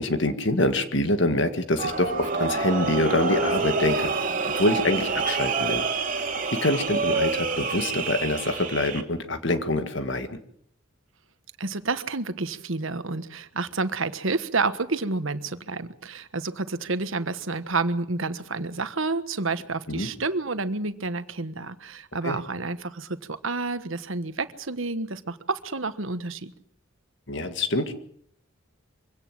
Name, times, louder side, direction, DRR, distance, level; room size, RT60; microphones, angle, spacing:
voice 1, 0.0-4.1 4.5-5.9 6.5-10.4 19.9-20.1 22.2-22.4 27.3-27.9, left 1 dB, 60° left, 9 dB, 1.9 m, -25 dB
sound 1, 1.8-9.0, right 4 dB, 40° right, 2.5 m, -27 dB
voice 2, 11.6-26.5, right 3 dB, 70° right, 12 dB, 1.4 m, -29 dB
24.5 x 17.0 x 7.6 m, 0.69 s
head